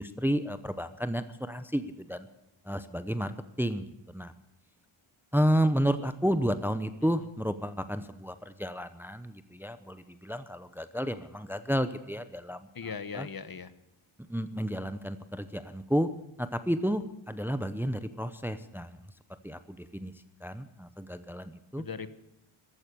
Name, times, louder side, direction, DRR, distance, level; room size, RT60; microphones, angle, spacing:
voice 1, 0.0-2.3 2.7-3.9 4.1-4.3 5.3-12.7 13.1-13.3 14.3-16.1 16.4-19.0 19.4-20.1 20.4-21.8, equal, 5° right, 12 dB, 0.7 m, -31 dB
voice 2, 12.7-13.7 21.8-22.1, left 6 dB, 45° left, 14 dB, 1.1 m, -39 dB
15.0 x 12.5 x 6.8 m, 0.88 s
wide cardioid pair, 120°, 49 cm